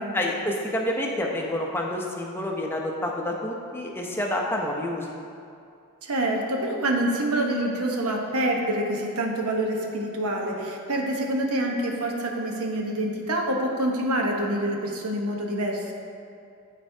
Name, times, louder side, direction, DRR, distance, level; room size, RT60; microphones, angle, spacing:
voice 1, 0.1-5.1, left 1 dB, 10° left, -1 dB, 0.5 m, -28 dB
voice 2, 6.0-15.9, right 1 dB, 80° right, 1 dB, 0.9 m, -26 dB
12.5 x 4.2 x 2.7 m, 2.5 s
head